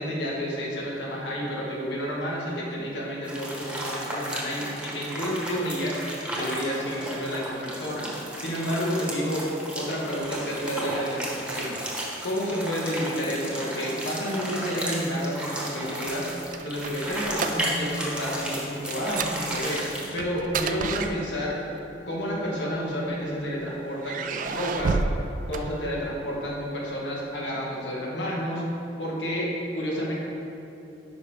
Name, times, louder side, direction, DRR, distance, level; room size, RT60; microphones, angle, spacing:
voice 1, 0.0-9.4 9.7-19.8 20.1-21.6 22.1-25.0 25.5-28.6 29.0-30.1, equal, 90° left, -4 dB, 1.7 m, -30 dB
sound 1, 3.2-20.2, right 1 dB, 5° right, 1.1 m, -34 dB
sound 2, 16.1-18.0 18.3-18.5 18.9-21.7 22.6-23.4 24.0-26.3, right 4 dB, 45° right, 0.3 m, -31 dB
9.6 x 5.4 x 3.5 m, 3.0 s
head